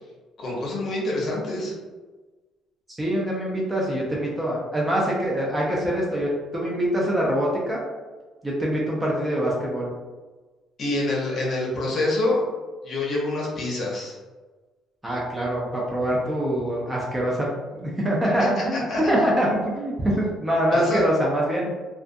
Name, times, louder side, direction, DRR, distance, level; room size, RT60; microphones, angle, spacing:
voice 1, 0.4-1.8 10.8-12.4 12.8-14.2 18.7-19.0 20.7-21.0, left 2 dB, 35° left, -3 dB, 0.7 m, -26 dB
voice 2, 3.0-7.8 8.4-9.9 15.0-21.7, equal, 10° right, -4 dB, 0.4 m, -24 dB
2.4 x 2.2 x 2.5 m, 1.3 s
cardioid pair, 160°, 0 cm